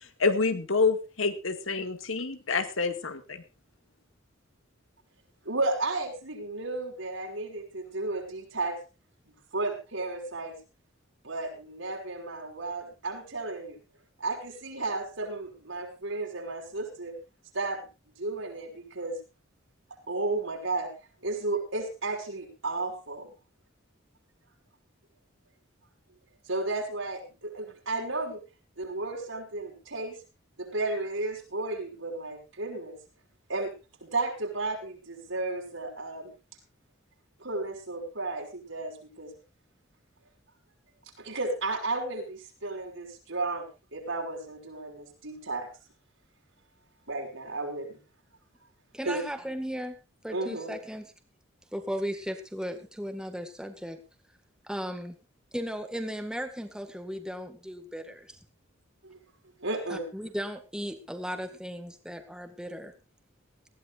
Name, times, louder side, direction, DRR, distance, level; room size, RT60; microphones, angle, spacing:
voice 1, 0.2-3.4, left 4 dB, 85° left, 8 dB, 2.1 m, -27 dB
voice 2, 5.4-8.8 9.5-10.6 11.2-13.8 14.2-17.2 17.5-17.8 18.2-19.2 20.1-20.9 21.2-23.3 26.5-28.4 28.8-30.2 30.6-33.0 33.5-33.7 34.0-36.3 37.4-39.3 41.2-43.6 43.9-45.7 47.1-48.0 49.0-49.2 50.3-50.8 59.0-59.2 59.6-60.1, right 2 dB, 75° right, 1 dB, 5.8 m, -33 dB
voice 3, 48.9-50.0 50.2-51.1 51.7-54.0 54.6-55.2 55.5-58.4 59.9-62.9, equal, 5° right, 6 dB, 1.9 m, -36 dB
19.5 x 15.5 x 2.5 m, 0.30 s
head